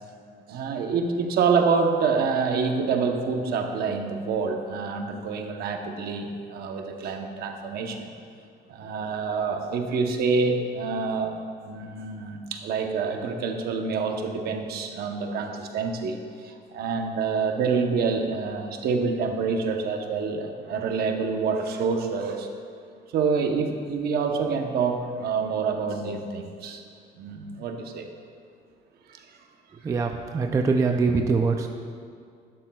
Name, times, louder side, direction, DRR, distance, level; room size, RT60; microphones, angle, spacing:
voice 1, 0.5-8.1 8.7-11.3 11.6-22.5 23.1-26.8 27.2-28.1 29.1-29.2, right 5 dB, 60° right, 4 dB, 0.9 m, -27 dB
voice 2, 29.8-31.7, right 4 dB, 15° right, 3 dB, 0.3 m, -23 dB
11.5 x 11.5 x 2.3 m, 2.3 s
cardioid pair, 175°, 18 cm